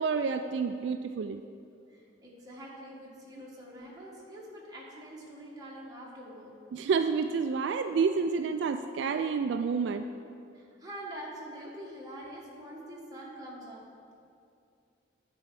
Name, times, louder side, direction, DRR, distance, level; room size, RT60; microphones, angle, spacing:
voice 1, 0.0-1.4 6.7-10.1, right 5 dB, 70° right, 8 dB, 0.3 m, -29 dB
voice 2, 1.9-6.5 10.5-13.8, right 1 dB, 20° right, -4 dB, 1.6 m, -45 dB
9.2 x 4.5 x 7.4 m, 2.4 s
head